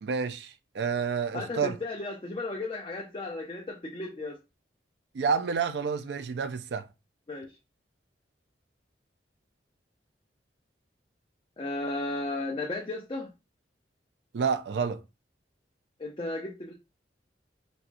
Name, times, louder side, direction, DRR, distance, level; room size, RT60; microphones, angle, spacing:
voice 1, 0.0-1.8 5.1-6.9 14.3-15.0, right 5 dB, 70° right, 0.4 m, -29 dB
voice 2, 1.3-4.4 7.3-7.5 11.6-13.3 16.0-16.7, left 2 dB, 30° left, 0.5 m, -34 dB
4.1 x 2.3 x 2.5 m
head